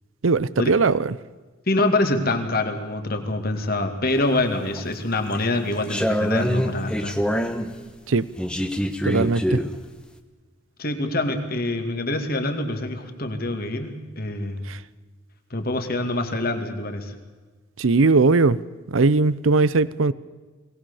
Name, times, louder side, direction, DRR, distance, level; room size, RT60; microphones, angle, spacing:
voice 1, 0.2-1.2 8.1-8.3 9.0-9.6 14.7-14.8 17.8-18.6 18.9-20.1, right 3 dB, 85° right, 19 dB, 0.7 m, -19 dB
voice 2, 1.7-7.2 10.8-14.6 15.5-17.1, left 2 dB, 50° left, 6 dB, 2.6 m, -25 dB
sound 1, 4.2-4.8 5.3-7.7 8.4-9.8, equal, 5° left, 1.3 m, -25 dB
22.5 x 19.0 x 7.1 m, 1.3 s
head